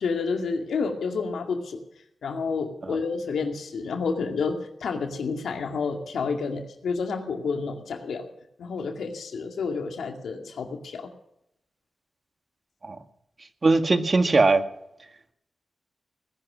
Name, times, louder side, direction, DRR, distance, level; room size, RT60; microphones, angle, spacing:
voice 1, 0.0-1.8 2.2-8.2 8.6-11.1, left 4 dB, 85° left, 4 dB, 2.2 m, -29 dB
voice 2, 13.6-14.6, right 3 dB, 50° right, 8 dB, 1.8 m, -20 dB
18.5 x 11.0 x 6.2 m, 0.79 s
cardioid pair, 45°, 0 cm